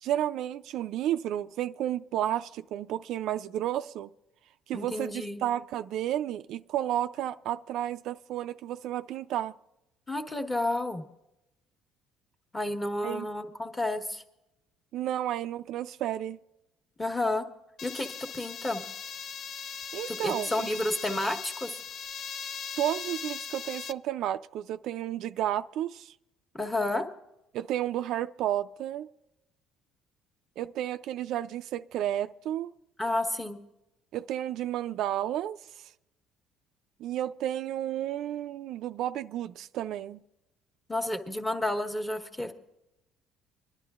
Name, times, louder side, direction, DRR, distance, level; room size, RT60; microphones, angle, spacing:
voice 1, 0.0-4.1 4.7-9.5 13.0-13.3 14.9-16.4 19.9-20.8 22.8-26.1 27.5-29.1 30.6-32.7 34.1-35.8 37.0-40.2, right 12 dB, 65° right, 0.3 m, -32 dB
voice 2, 4.7-5.4 10.1-11.0 12.5-14.2 17.0-17.4 17.8-18.8 20.1-21.7 26.5-27.1 33.0-33.6 40.9-42.5, left 1 dB, 15° left, 1.3 m, -31 dB
sound 1, 17.8-23.9, left 7 dB, 45° left, 0.4 m, -39 dB
27.0 x 11.0 x 2.4 m
cardioid pair, 115°, 0 cm